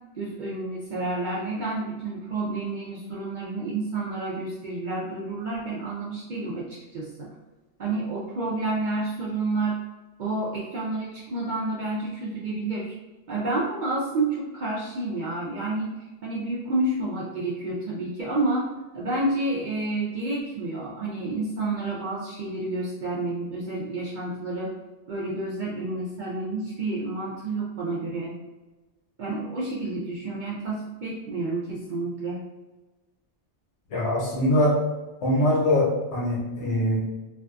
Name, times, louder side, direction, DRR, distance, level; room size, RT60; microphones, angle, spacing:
voice 1, 0.2-7.3 7.8-9.8 10.2-12.9 13.3-24.7 25.1-28.4 29.2-32.4, right 2 dB, 60° right, -6 dB, 0.5 m, -29 dB
voice 2, 33.9-34.7 35.2-37.0, left 1 dB, 75° left, -4 dB, 1.1 m, -22 dB
2.5 x 2.3 x 2.3 m, 1.1 s
omnidirectional pair, 1.2 m